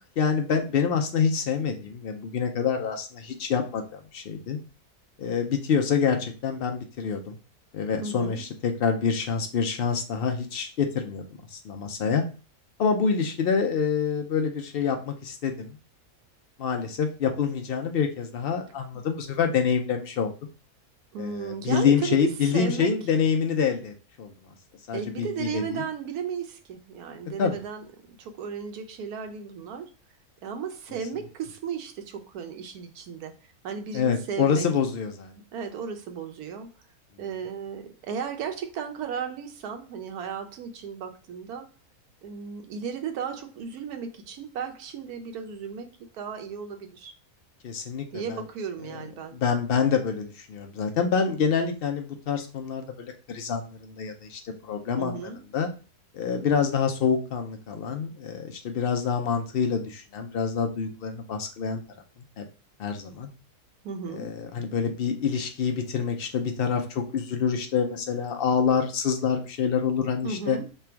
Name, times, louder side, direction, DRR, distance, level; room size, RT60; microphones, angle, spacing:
voice 1, 0.2-4.6 5.2-7.4 7.7-11.2 11.5-12.2 12.8-15.8 16.6-20.3 21.2-24.3 24.9-25.8 27.4-27.5 33.9-35.3 47.6-48.4 49.3-55.7 56.1-61.8 62.4-62.5 62.8-63.3 64.1-70.6, left 6 dB, 70° left, 5 dB, 0.5 m, -26 dB
voice 2, 8.0-8.4 21.1-22.2 22.5-22.9 24.9-29.9 30.4-33.3 33.6-34.7 35.3-36.7 37.2-41.7 42.2-45.9 46.1-47.1 48.1-49.4 55.0-55.4 63.8-64.3 70.2-70.7, right 6 dB, 85° right, 5 dB, 1.2 m, -35 dB
3.3 x 2.3 x 4.4 m, 0.35 s
omnidirectional pair, 1.6 m